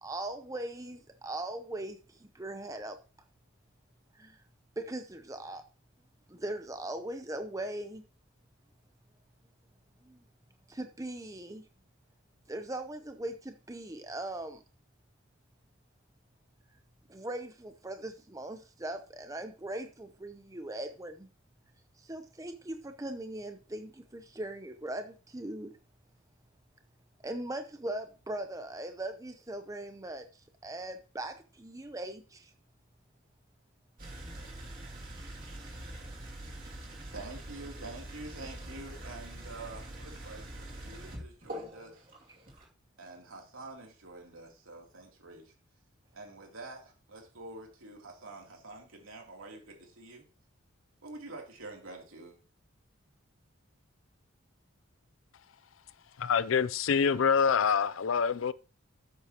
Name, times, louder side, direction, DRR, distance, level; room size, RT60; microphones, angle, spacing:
voice 1, 0.0-3.0 4.1-4.4 4.8-5.6 6.3-8.0 10.0-10.2 10.7-11.6 12.5-14.6 17.1-21.3 22.0-25.7 27.2-30.3 30.6-32.5, right 1 dB, 15° right, 0.7 m, -40 dB
sound 1, 34.0-42.6, right 1 dB, 40° right, 2.6 m, -44 dB
voice 2, 37.1-42.1 43.0-45.5 46.1-50.2 51.0-52.4, right 2 dB, 75° right, 3.1 m, -47 dB
voice 3, 56.2-58.5, left 6 dB, 65° left, 0.4 m, -26 dB
12.5 x 8.2 x 2.9 m
head